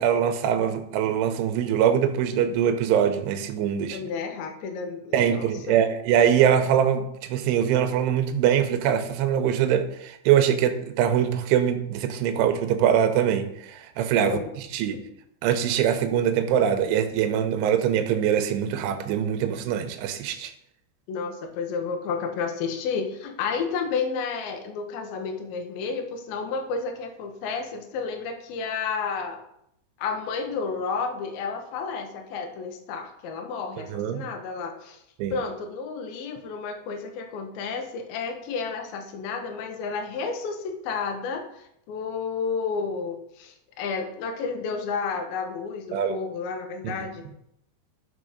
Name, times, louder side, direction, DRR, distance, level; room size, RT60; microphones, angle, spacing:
voice 1, 0.0-4.0 5.1-14.4 14.7-15.0 15.4-20.5 33.9-34.2 35.2-35.4 45.9-46.2 46.8-46.9, right 9 dB, 80° right, 7 dB, 2.7 m, -23 dB
voice 2, 3.9-5.8 14.2-14.5 21.1-29.4 30.0-35.0 35.3-47.2, left 5 dB, 70° left, 4 dB, 2.5 m, -31 dB
12.0 x 4.6 x 5.0 m, 0.76 s
omnidirectional pair, 5.3 m